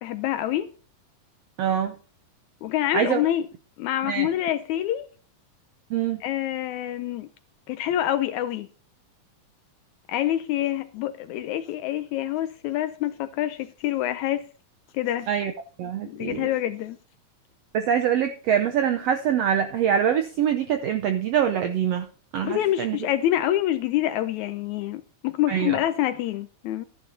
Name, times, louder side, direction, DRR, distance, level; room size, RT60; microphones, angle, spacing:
voice 1, 0.0-0.7 2.6-3.4 3.8-5.1 6.2-7.3 7.7-8.7 10.1-14.4 14.9-15.3 16.0-17.0 22.4-26.9, left 13 dB, 80° left, 1.7 m, -26 dB
voice 2, 1.6-1.9 2.9-3.2 4.0-4.3 5.9-6.2 15.3-15.5 15.8-16.5 17.7-22.1 22.3-23.0 25.5-25.8, right 9 dB, 80° right, 1.4 m, -24 dB
14.0 x 10.5 x 2.7 m
omnidirectional pair, 3.8 m